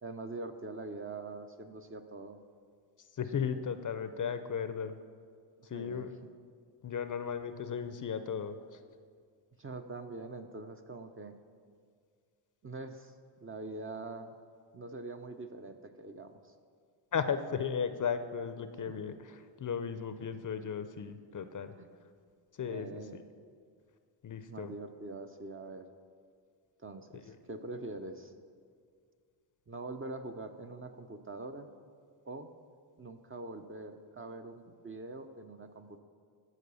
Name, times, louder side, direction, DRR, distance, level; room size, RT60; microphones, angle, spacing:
voice 1, 0.0-2.4 5.6-6.1 9.6-11.3 12.6-13.1 13.4-14.4 14.7-16.5 21.8-21.9 22.7-23.2 24.5-25.9 26.8-28.3 29.7-31.7 32.3-32.5 33.0-36.0, right 3 dB, 25° right, 6 dB, 0.6 m, -44 dB
voice 2, 3.1-5.0 5.6-6.1 6.8-8.8 17.1-21.7 22.5-23.0 24.2-24.7 27.1-27.4, left 7 dB, 40° left, 10 dB, 0.6 m, -36 dB
12.5 x 4.7 x 6.9 m, 2.1 s
cardioid pair, 70°, 50 cm